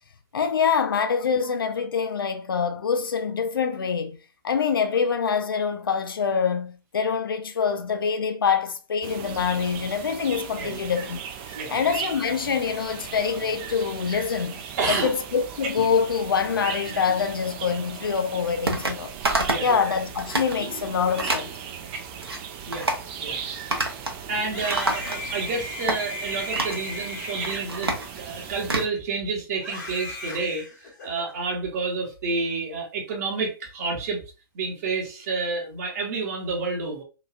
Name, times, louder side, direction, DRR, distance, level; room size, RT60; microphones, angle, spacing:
voice 1, 0.3-4.2 4.4-11.2 11.5-14.6 14.9-19.1 19.6-21.5, left 6 dB, 65° left, 0.5 m, -25 dB
sound 1, 9.0-28.9, right 7 dB, 25° right, 0.3 m, -37 dB
voice 2, 11.5-11.9 14.8-15.1 19.5-19.8 22.6-22.9 23.2-23.8 24.3-34.2 34.5-37.0, right 4 dB, 40° right, 0.8 m, -30 dB
sound 2, 18.7-19.0 19.3-19.7 20.1-20.5 21.2-21.5 22.0-22.4 22.7-23.1 23.7-24.2 24.5-25.4 25.9-26.0 26.5-26.8 27.3-28.9, right 2 dB, 85° right, 0.7 m, -27 dB
Screaming, 24.4-28.9 29.6-31.3, left 2 dB, 50° left, 1.2 m, -37 dB
3.0 x 2.3 x 2.4 m
figure-of-eight pair, 115°, 13 cm